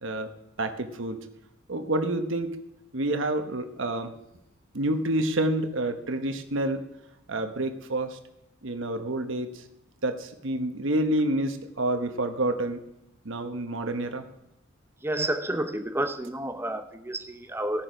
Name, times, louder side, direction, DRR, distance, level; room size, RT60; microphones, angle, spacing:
voice 1, 0.6-1.2 1.7-2.5 2.9-4.1 4.7-6.8 7.3-8.2 8.6-9.6 10.0-12.8 13.2-14.2, right 1 dB, 65° right, 7 dB, 1.1 m, -28 dB
voice 2, 15.0-17.8, right 1 dB, 10° right, 8 dB, 0.8 m, -30 dB
16.0 x 6.9 x 5.1 m, 0.84 s
head